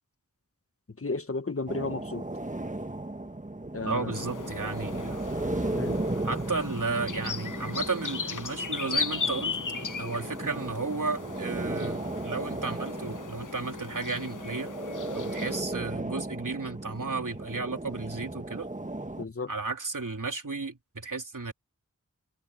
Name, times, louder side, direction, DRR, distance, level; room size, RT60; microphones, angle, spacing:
voice 1, 1.0-2.3 3.7-4.3 5.7-6.0 19.2-19.5, left 3 dB, 45° left, 1.2 m, -33 dB
sound 1, 1.7-19.2, right 2 dB, 25° right, 1.5 m, -35 dB
voice 2, 3.8-5.2 6.2-9.6 10.0-14.7 15.1-18.7 19.5-21.5, right 4 dB, 80° right, 3.5 m, -33 dB
sound 2, 4.1-15.6, left 5 dB, 75° left, 1.0 m, -37 dB
wide cardioid pair, 45°, 31 cm